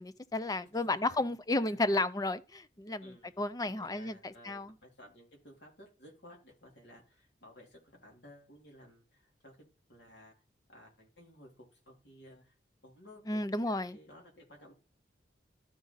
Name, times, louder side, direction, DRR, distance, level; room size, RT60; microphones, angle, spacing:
voice 1, 0.0-4.7 13.3-14.0, left 2 dB, 20° left, 0.5 m, -33 dB
voice 2, 0.7-1.2 1.6-1.9 3.0-10.3 10.7-12.5 12.8-14.7, left 1 dB, 70° left, 3.1 m, -56 dB
12.5 x 5.0 x 3.9 m
head